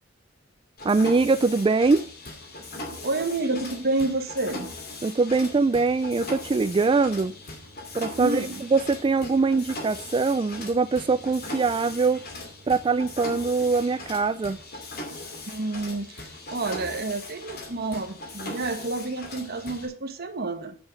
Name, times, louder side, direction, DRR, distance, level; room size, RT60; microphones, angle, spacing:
Mechanisms, 0.8-19.9, left 2 dB, 50° left, 2.6 m, -39 dB
voice 1, 0.8-2.0 5.0-7.4 7.9-8.4 8.7-12.2 12.7-14.6, right 4 dB, 25° right, 0.3 m, -22 dB
voice 2, 3.0-4.7 8.2-8.6 15.5-20.8, right 2 dB, 50° right, 1.3 m, -29 dB
8.0 x 7.8 x 5.0 m
head